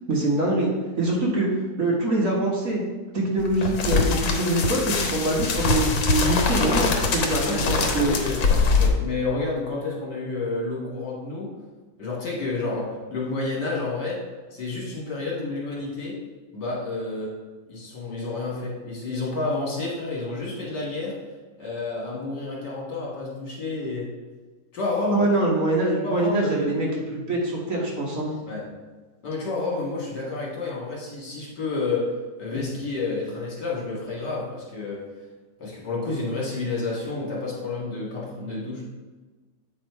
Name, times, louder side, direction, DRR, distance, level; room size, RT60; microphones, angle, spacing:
voice 1, 0.1-0.7 1.0-1.5 1.8-2.8 3.1-8.2 25.1-26.9 27.1-28.3, right 2 dB, 45° right, -3 dB, 1.6 m, -24 dB
sound 1, 3.4-8.9, left 4 dB, 80° left, 1.6 m, -23 dB
voice 2, 7.4-8.4 8.8-11.5 12.0-14.2 14.5-16.2 16.5-17.3 17.7-21.2 21.6-24.1 24.7-25.3 26.0-26.7 28.5-28.6 29.2-32.1 32.4-35.0 35.6-38.8, left 3 dB, 65° left, -4 dB, 2.5 m, -30 dB
8.4 x 4.4 x 4.6 m, 1.3 s
omnidirectional pair, 2.0 m